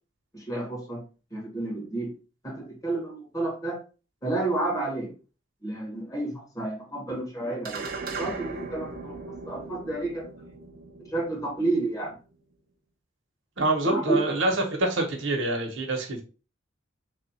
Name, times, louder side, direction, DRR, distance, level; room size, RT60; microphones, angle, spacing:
voice 1, 0.3-1.0 1.3-2.1 2.4-3.8 4.2-5.1 5.6-7.8 8.2-10.3 11.1-12.2 13.8-14.2, right 2 dB, 15° left, -2 dB, 1.6 m, -30 dB
sound 1, 7.6-12.3, right 3 dB, 50° right, 0.7 m, -38 dB
voice 2, 13.6-16.2, right 2 dB, 75° right, 3 dB, 1.0 m, -26 dB
3.3 x 2.4 x 4.1 m, 0.33 s
head